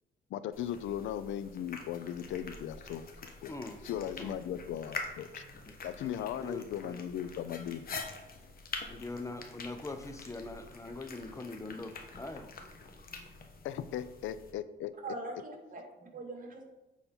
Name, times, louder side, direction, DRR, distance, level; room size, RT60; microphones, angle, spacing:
voice 1, 0.3-3.6 3.8-5.4 5.8-7.8 13.6-14.9, left 10 dB, 75° left, 14 dB, 0.5 m, -38 dB
sound 1, 0.5-14.5, left 4 dB, 50° left, 1.2 m, -46 dB
voice 2, 3.5-3.9 4.2-4.4 5.7-5.8 6.0-7.0 8.9-12.5, left 2 dB, 15° left, 7 dB, 0.8 m, -42 dB
voice 3, 15.0-16.6, right 2 dB, 45° right, 2 dB, 2.0 m, -42 dB
9.2 x 4.1 x 4.4 m, 0.98 s
cardioid pair, 90°, 20 cm